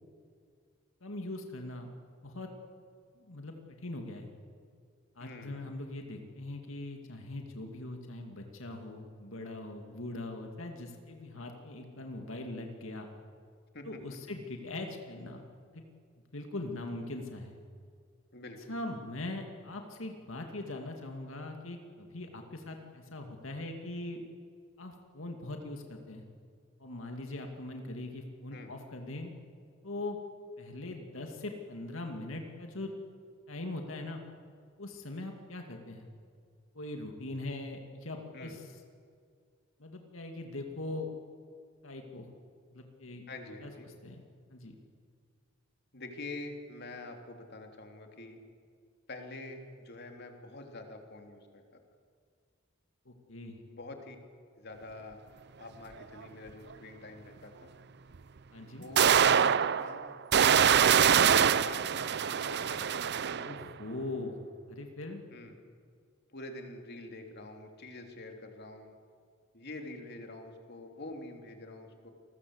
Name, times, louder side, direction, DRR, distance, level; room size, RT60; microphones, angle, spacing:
voice 1, 1.0-1.9 2.2-2.5 3.2-4.3 5.2-13.1 13.8-15.4 15.7-15.8 16.3-17.6 18.7-24.2 24.8-26.2 26.8-29.3 29.8-30.2 30.6-32.9 33.5-34.2 34.8-36.1 36.7-38.6 39.8-41.1 41.8-42.2 42.7-43.2 43.6-43.7 44.0-44.2 44.5-44.7 53.1-53.6 58.5-58.9 63.4-64.4 64.7-65.2, left 2 dB, 70° left, 3 dB, 2.4 m, -41 dB
voice 2, 5.2-5.8 13.7-13.9 18.3-18.8 28.5-28.7 38.3-38.6 43.3-43.9 45.9-48.4 49.1-51.6 53.7-54.2 54.6-55.2 55.6-57.7 58.7-59.2 59.6-60.1 60.7-63.6 65.3-65.6 66.3-68.9 69.5-72.1, left 2 dB, 55° left, 4 dB, 3.4 m, -46 dB
sound 1, 56.2-56.3 58.1-58.2 59.0-63.6, right 8 dB, 55° right, 0.6 m, -24 dB
29.0 x 21.0 x 8.1 m, 2.2 s
head